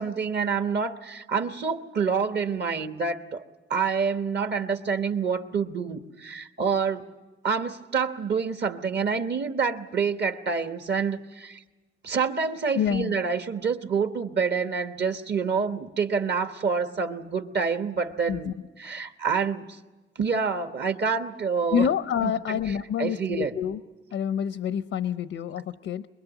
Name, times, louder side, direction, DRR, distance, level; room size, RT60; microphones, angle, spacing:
voice 1, 0.0-3.4 3.7-7.0 7.4-11.6 12.0-19.8 20.2-21.9 22.2-22.6 23.0-23.6, right 5 dB, 55° right, 1.2 m, -27 dB
voice 2, 12.7-13.2 18.3-18.5 21.7-23.8 24.1-26.1, left 8 dB, 85° left, 0.7 m, -27 dB
23.5 x 21.5 x 8.1 m
cardioid pair, 110°, 21 cm